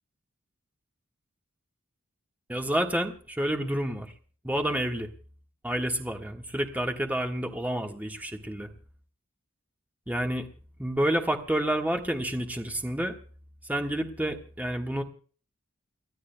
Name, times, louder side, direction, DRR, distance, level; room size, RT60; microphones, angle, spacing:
voice 1, 2.5-4.1 4.4-5.1 5.6-8.7 10.1-10.5 10.8-13.2 13.7-15.0, right 1 dB, 10° right, 3 dB, 1.5 m, -29 dB
30.0 x 12.5 x 2.2 m, 0.41 s
head